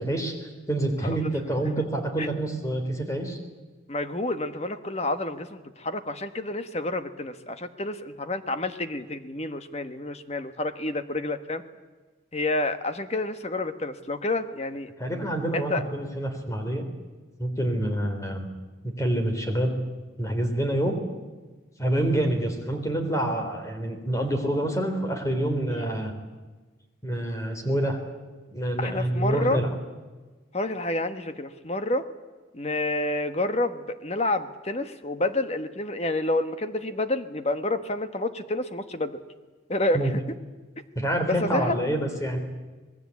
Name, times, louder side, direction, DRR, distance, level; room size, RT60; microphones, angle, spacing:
voice 1, 0.0-3.4 15.0-16.8 17.4-18.5 18.8-19.7 20.2-21.0 21.8-26.1 27.0-28.0 28.5-29.7 39.9-40.1 41.0-42.4, right 1 dB, 15° left, 5 dB, 3.7 m, -27 dB
voice 2, 3.9-11.6 12.3-14.9 15.5-15.8 25.7-25.9 28.8-29.6 30.5-32.1 32.5-39.2 39.7-40.2 41.3-41.8, left 2 dB, 35° left, 10 dB, 1.4 m, -29 dB
26.5 x 20.0 x 8.5 m, 1.3 s
head